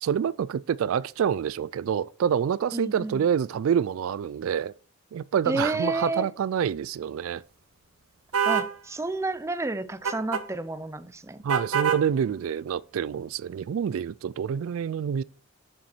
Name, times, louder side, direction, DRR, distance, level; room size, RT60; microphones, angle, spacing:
voice 1, 0.0-4.7 5.1-7.4 11.4-15.2, right 8 dB, 70° right, 0.3 m, -27 dB
voice 2, 2.7-3.3 5.5-6.3 8.5-11.4, right 2 dB, 15° right, 0.5 m, -30 dB
sound 1, 8.3-8.7 10.0-10.4 11.5-12.0, right 7 dB, 85° right, 1.0 m, -25 dB
9.1 x 7.2 x 4.4 m
head